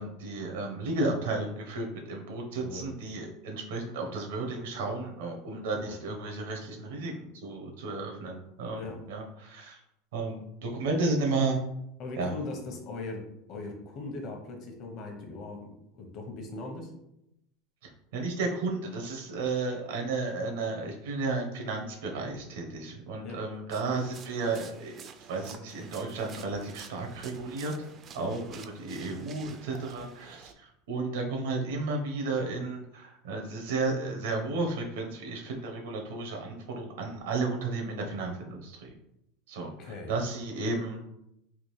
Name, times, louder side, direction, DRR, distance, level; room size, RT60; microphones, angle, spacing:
voice 1, 0.0-9.8 10.1-11.6 12.2-12.3 17.8-27.9 28.1-38.9 39.5-41.1, right 3 dB, 90° right, 2 dB, 0.9 m, -33 dB
voice 2, 2.5-2.9 5.8-5.9 8.8-9.0 12.0-16.9 23.2-23.4 28.2-28.4 28.8-29.2 39.8-40.1, left 3 dB, 40° left, 2 dB, 0.8 m, -40 dB
sound 1, 23.7-30.5, right 6 dB, 30° right, 0.3 m, -49 dB
3.6 x 2.5 x 3.1 m, 0.81 s
supercardioid pair, 155°, 0 cm